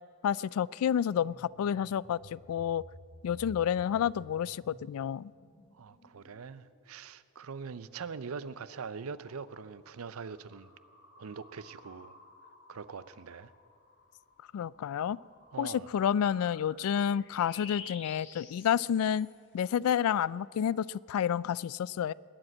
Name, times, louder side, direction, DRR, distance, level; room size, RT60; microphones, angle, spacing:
voice 1, 0.2-2.8 3.2-5.3 14.5-15.2 15.6-19.3 19.5-22.1, left 9 dB, 90° left, 18 dB, 0.3 m, -30 dB
sound 1, 1.0-7.0 7.5-19.6, left 4 dB, 55° left, 1.4 m, -53 dB
voice 2, 5.7-10.7 11.2-12.2 12.7-13.5 15.5-15.9, right 5 dB, 85° right, 16 dB, 0.5 m, -43 dB
20.5 x 7.9 x 8.5 m, 2.3 s
head